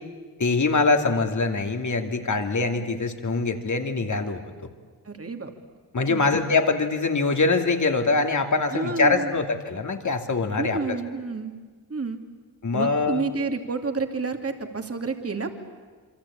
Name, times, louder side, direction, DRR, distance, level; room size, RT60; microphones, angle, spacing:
voice 1, 0.4-4.4 5.9-11.0 12.6-13.2, left 3 dB, 50° left, 5 dB, 2.7 m, -23 dB
voice 2, 5.1-5.5 6.1-6.3 8.7-9.3 10.6-11.5 11.9-12.2 12.7-15.5, right 4 dB, 35° right, 5 dB, 2.7 m, -29 dB
27.5 x 24.5 x 8.8 m, 1.5 s
cardioid pair, 65°, 39 cm